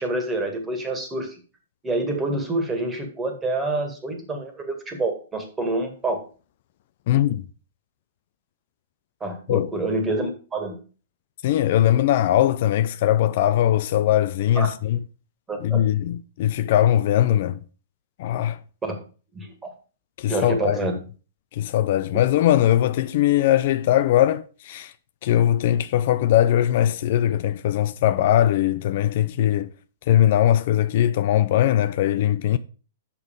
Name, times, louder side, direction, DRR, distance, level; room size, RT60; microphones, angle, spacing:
voice 1, 0.0-1.3 1.8-6.2 9.2-10.8 14.6-14.7 15.5-15.9 18.8-19.0 19.3-19.7 20.3-20.9 22.1-22.2, right 2 dB, 15° right, 1.8 m, -27 dB
voice 2, 7.1-7.4 9.5-9.7 11.4-15.0 15.6-17.6 18.2-18.6 20.2-20.8 21.6-24.9 25.2-29.7 30.1-32.6, left 12 dB, 55° left, 0.4 m, -20 dB
6.1 x 5.7 x 5.1 m
hypercardioid pair, 125°, 0 cm